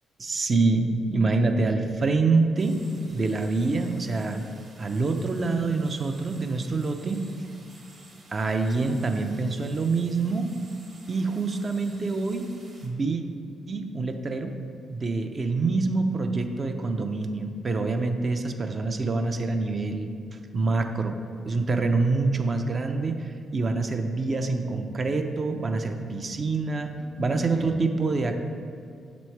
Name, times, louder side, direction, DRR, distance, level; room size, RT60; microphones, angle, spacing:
voice 1, 0.2-2.8 3.1-4.4 4.8-7.2 8.3-10.5 11.1-12.4 12.8-13.2 13.7-14.5 14.9-20.1 20.5-21.2 21.4-28.3, right 3 dB, 40° right, 5 dB, 0.5 m, -26 dB
sound 1, 2.6-12.9, right 2 dB, 65° right, 1.1 m, -52 dB
7.0 x 3.1 x 4.5 m, 2.2 s
cardioid pair, 70°, 0 cm